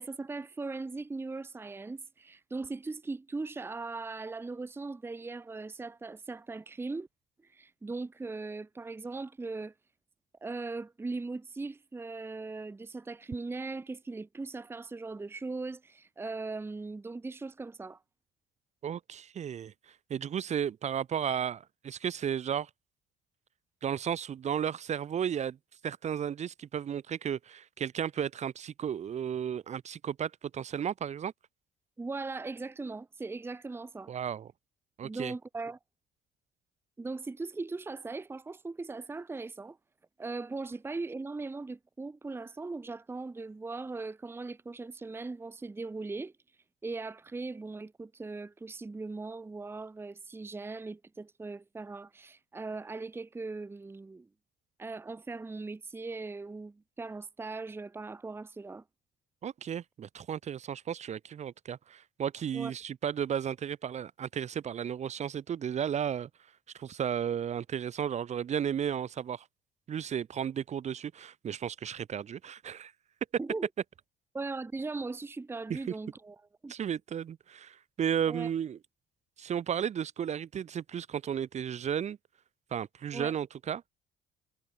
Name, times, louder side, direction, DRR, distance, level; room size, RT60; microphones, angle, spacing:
voice 1, 0.0-7.1 7.5-9.7 10.4-18.0 32.0-34.1 35.0-35.8 37.0-39.8 40.2-46.3 46.8-54.3 54.8-58.8 62.5-62.7 73.4-73.7 74.3-76.4 76.6-76.7 78.3-78.5 83.1-83.3, right 3 dB, 15° right, 0.8 m, -39 dB
voice 2, 18.8-19.7 20.1-22.7 23.8-25.6 25.8-31.3 34.1-34.5 35.0-35.3 59.4-66.3 66.7-69.4 69.9-72.9 75.7-75.9 76.7-78.8 79.4-82.2 82.7-83.8, right 8 dB, 40° right, 1.0 m, -34 dB
cardioid pair, 110°, 17 cm